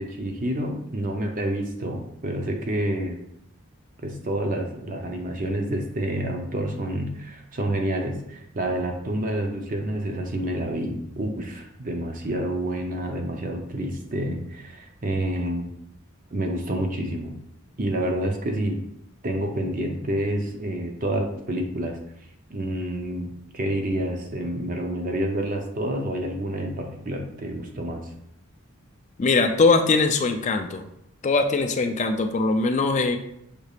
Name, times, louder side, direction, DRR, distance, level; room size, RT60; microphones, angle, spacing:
voice 1, 0.0-3.2 4.0-15.7 16.3-17.4 17.8-18.8 19.2-22.0 22.5-28.1, right 1 dB, 40° right, 3 dB, 0.6 m, -28 dB
voice 2, 29.2-30.8 31.2-33.2, left 3 dB, 35° left, 6 dB, 0.4 m, -21 dB
6.5 x 3.3 x 2.4 m, 0.77 s
head